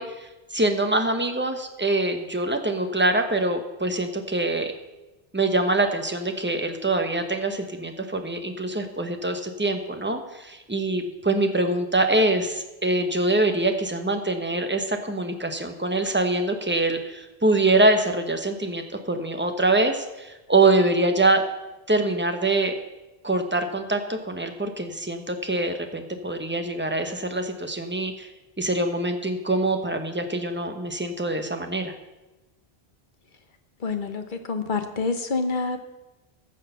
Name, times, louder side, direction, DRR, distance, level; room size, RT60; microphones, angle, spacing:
voice 1, 0.0-4.7 5.3-21.4 21.9-22.7 23.2-28.3 28.6-31.9, right 2 dB, 10° right, 6 dB, 0.9 m, -24 dB
voice 2, 33.8-35.8, left 4 dB, 50° left, 7 dB, 1.2 m, -27 dB
14.5 x 6.5 x 5.6 m, 1.0 s
omnidirectional pair, 1.1 m